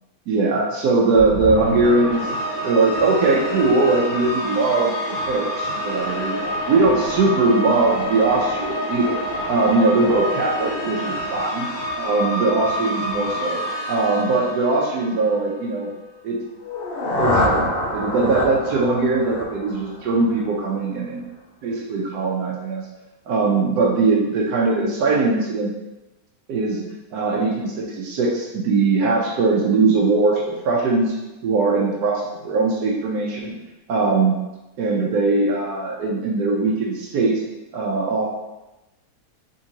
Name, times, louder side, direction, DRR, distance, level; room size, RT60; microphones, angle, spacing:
voice 1, 0.3-2.3 2.6-9.2 9.5-11.7 12.0-13.6 13.9-15.9 16.2-16.4 17.2-21.2 21.6-22.9 23.3-25.7 26.5-26.8 27.1-31.2 31.4-33.6 33.9-34.4 34.8-37.4 37.7-38.3, right 3 dB, 85° right, -3 dB, 1.2 m, -20 dB
sound 1, 1.1-15.5, equal, 70° left, 1.2 m, -27 dB
sound 2, 16.6-20.5, left 1 dB, 85° left, 0.5 m, -25 dB
3.8 x 3.5 x 2.8 m, 1.0 s
omnidirectional pair, 1.7 m